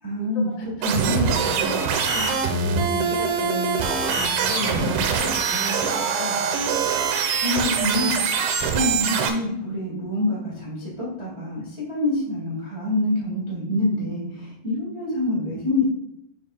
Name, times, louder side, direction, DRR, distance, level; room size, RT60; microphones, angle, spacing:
voice 1, 0.0-0.5 0.8-1.3 7.0-8.4 8.7-15.8, left 1 dB, 65° right, -6 dB, 0.6 m, -26 dB
voice 2, 0.8-6.5, left 3 dB, 80° left, -1 dB, 4.8 m, -34 dB
sound 1, 0.8-9.3, right 6 dB, 80° right, 3.0 m, -23 dB
8.9 x 7.1 x 2.4 m, 0.81 s
omnidirectional pair, 5.5 m